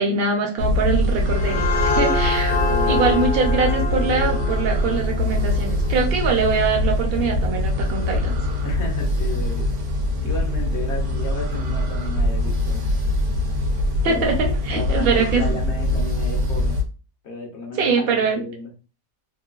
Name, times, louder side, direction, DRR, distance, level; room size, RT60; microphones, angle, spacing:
voice 1, 0.0-2.6 2.9-8.4 14.0-15.5 17.7-18.4, right 5 dB, 55° right, 1 dB, 0.7 m, -23 dB
sound 1, 0.6-16.8, left 1 dB, 90° right, 1.3 m, -23 dB
sound 2, 1.1-6.5, left 3 dB, 75° left, 1.1 m, -26 dB
voice 2, 2.5-3.0 8.6-9.7 10.2-12.8 14.0-14.4 14.7-16.8 17.2-18.7, left 3 dB, 55° left, 0 dB, 0.8 m, -33 dB
3.1 x 2.2 x 2.3 m, 0.34 s
omnidirectional pair, 1.7 m